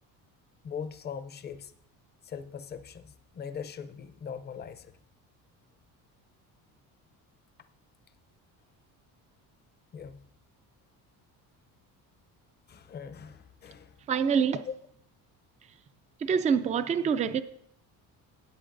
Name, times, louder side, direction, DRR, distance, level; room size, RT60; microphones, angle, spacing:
voice 1, 0.6-1.7 2.2-4.9 9.9-10.2 12.7-14.0 14.7-14.8, left 7 dB, 30° left, 0.6 m, -41 dB
voice 2, 14.1-14.6 16.2-17.4, right 6 dB, 20° right, 0.3 m, -25 dB
18.0 x 7.8 x 2.6 m
cardioid pair, 150°, 36 cm